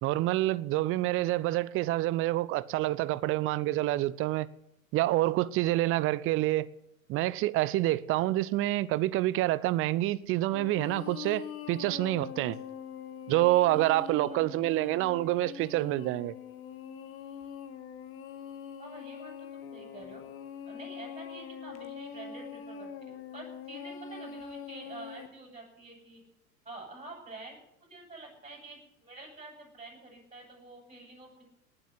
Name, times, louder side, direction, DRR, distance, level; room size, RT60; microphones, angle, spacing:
voice 1, 0.0-4.5 4.9-6.7 7.1-12.6 13.3-16.4, right 16 dB, 30° right, 0.8 m, -27 dB
sound 1, 10.5-25.3, left 7 dB, 30° left, 1.8 m, -43 dB
voice 2, 18.8-20.2 20.7-26.2 26.6-27.6 27.9-31.5, right 2 dB, 15° right, 7.7 m, -48 dB
19.0 x 7.9 x 9.6 m
figure-of-eight pair, 85°, 42 cm